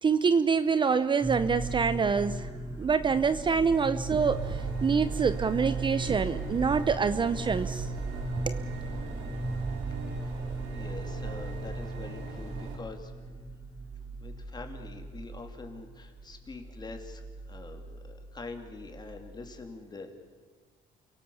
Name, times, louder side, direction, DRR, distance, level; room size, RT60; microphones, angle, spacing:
voice 1, 0.0-2.5 2.8-7.9 8.5-8.6, right 5 dB, 30° right, 13 dB, 0.7 m, -26 dB
sound 1, 1.2-19.6, right 2 dB, 10° right, 4.7 m, -37 dB
sound 2, 4.2-12.8, right 3 dB, 90° right, 4.2 m, -41 dB
voice 2, 10.7-13.1 14.2-17.2 17.5-20.1, left 3 dB, 25° left, 5 dB, 3.1 m, -44 dB
29.5 x 17.5 x 7.2 m, 1.5 s
cardioid pair, 110°, 17 cm